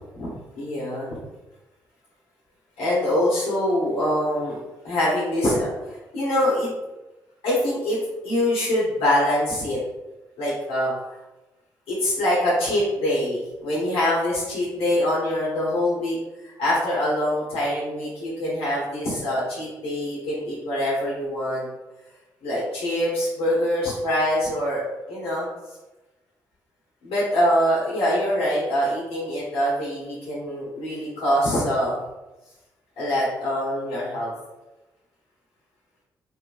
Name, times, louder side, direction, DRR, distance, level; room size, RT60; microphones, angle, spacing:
voice 1, 0.5-1.1 2.8-4.6 4.8-6.7 7.4-8.0 8.2-9.8 10.4-10.9 11.9-16.2 16.4-21.7 22.4-25.5 27.0-32.0 33.0-34.3, left 1 dB, 85° left, -7 dB, 1.2 m, -24 dB
3.8 x 2.7 x 3.0 m, 1.0 s
supercardioid pair, 45°, 9 cm